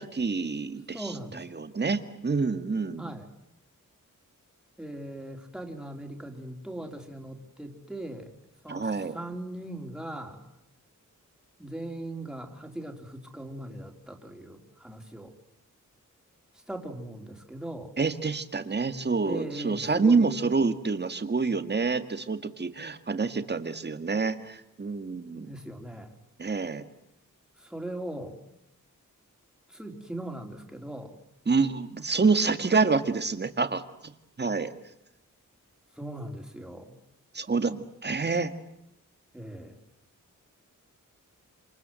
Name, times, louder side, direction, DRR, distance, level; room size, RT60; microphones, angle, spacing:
voice 1, 0.1-3.1 8.7-9.2 18.0-25.5 26.4-26.8 31.5-33.8 34.4-34.7 37.3-38.5, right 4 dB, 30° right, 9 dB, 1.9 m, -27 dB
voice 2, 0.9-1.4 3.0-3.3 4.8-8.3 8.6-10.5 11.6-15.3 16.7-18.0 19.2-20.5 25.5-26.2 27.6-28.4 29.7-31.2 32.4-32.5 36.0-37.0 39.3-39.8, right 1 dB, ahead, 2 dB, 3.8 m, -39 dB
27.5 x 27.5 x 7.8 m, 0.84 s
wide cardioid pair, 140°, 32 cm